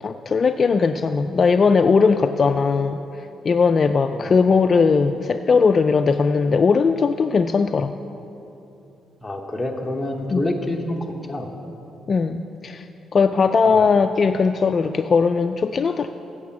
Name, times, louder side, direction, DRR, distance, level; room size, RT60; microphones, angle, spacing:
voice 1, 0.0-7.9 10.3-10.4 12.1-12.9 13.1-16.1, left 5 dB, 40° left, 8 dB, 0.3 m, -19 dB
voice 2, 9.2-11.5 13.7-13.8, left 1 dB, 5° left, 0 dB, 0.9 m, -27 dB
8.3 x 6.7 x 8.4 m, 2.9 s
cardioid pair, 90°, 0 cm